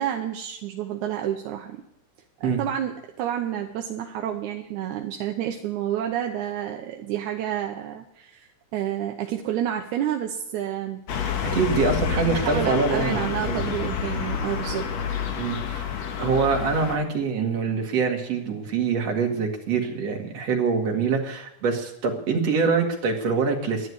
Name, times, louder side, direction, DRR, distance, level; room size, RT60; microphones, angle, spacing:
voice 1, 0.0-1.8 2.4-11.0 12.1-14.9, right 10 dB, 80° right, 3 dB, 2.3 m, -29 dB
sound 1, 11.1-17.0, left 7 dB, 65° left, 2.5 m, -28 dB
voice 2, 11.5-13.7 15.4-15.8 16.2-23.9, right 5 dB, 55° right, 1 dB, 3.2 m, -24 dB
11.5 x 10.5 x 9.5 m, 0.81 s
omnidirectional pair, 3.5 m